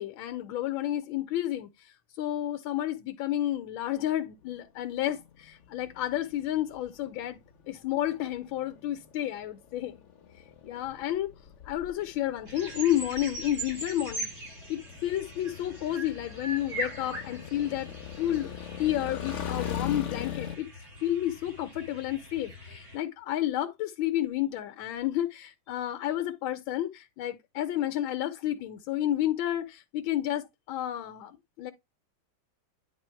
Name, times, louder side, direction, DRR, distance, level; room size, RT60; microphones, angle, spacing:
voice 1, 0.0-7.4 7.7-10.0 10.6-11.3 11.6-17.9 18.2-18.5 18.8-20.7 21.0-31.7, left 12 dB, 80° left, 1.4 m, -31 dB
sound 1, 4.4-20.6, left 9 dB, 50° left, 1.0 m, -41 dB
sound 2, 12.5-23.0, right 1 dB, 70° right, 6.0 m, -41 dB
9.7 x 3.4 x 4.4 m
omnidirectional pair, 2.2 m